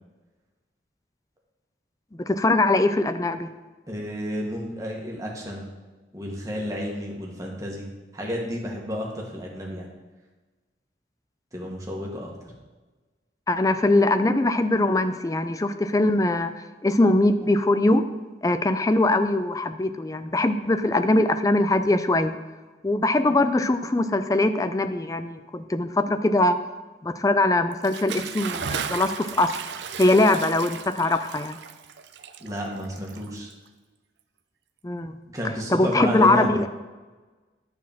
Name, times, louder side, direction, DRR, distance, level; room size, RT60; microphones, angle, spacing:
voice 1, 2.2-3.5 13.5-16.5 16.8-18.0 18.4-22.3 22.8-26.6 27.0-29.5 30.0-31.6 34.8-35.1 35.7-36.7, left 2 dB, 20° left, 10 dB, 0.4 m, -22 dB
voice 2, 3.9-5.6 6.1-9.9 11.5-12.5 32.4-33.5 35.3-36.5, equal, 20° right, -2 dB, 1.6 m, -31 dB
Bathtub (filling or washing) / Splash splatter, 27.7-33.7, right 7 dB, 85° right, 0.5 m, -35 dB
9.9 x 4.2 x 7.2 m, 1.3 s
head